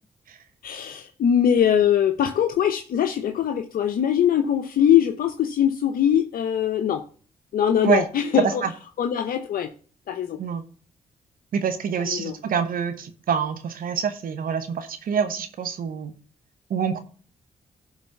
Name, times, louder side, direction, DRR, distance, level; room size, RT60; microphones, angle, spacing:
voice 1, 0.6-7.0 7.5-8.6 9.0-9.7 10.1-10.4 12.1-12.4, left 9 dB, 75° left, 0.8 m, -22 dB
voice 2, 11.5-16.1 16.7-17.0, right 7 dB, 70° right, 1.0 m, -26 dB
11.0 x 4.0 x 5.7 m
supercardioid pair, 55°, 15 cm